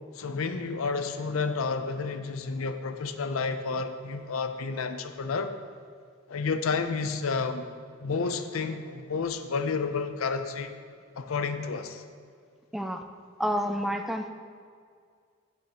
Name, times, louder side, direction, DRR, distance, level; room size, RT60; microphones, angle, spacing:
voice 1, 0.1-5.6 6.3-7.7 8.0-10.7 11.2-12.0, left 4 dB, 80° left, 9 dB, 0.5 m, -30 dB
voice 2, 13.4-14.3, equal, ahead, 5 dB, 0.3 m, -29 dB
10.5 x 8.0 x 2.9 m, 2.1 s
head